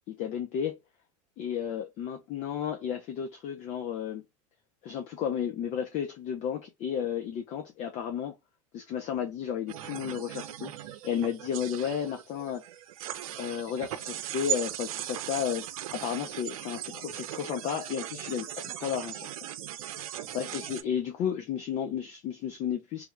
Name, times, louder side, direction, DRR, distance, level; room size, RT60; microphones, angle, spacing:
voice 1, 0.1-0.8 1.4-4.2 4.8-8.3 8.7-12.6 13.4-15.6 15.9-19.3 20.3-23.1, left 8 dB, 40° left, 0.7 m, -33 dB
sound 1, 9.7-20.8, right 11 dB, 70° right, 0.6 m, -38 dB
3.4 x 2.3 x 3.2 m
hypercardioid pair, 105°, 18 cm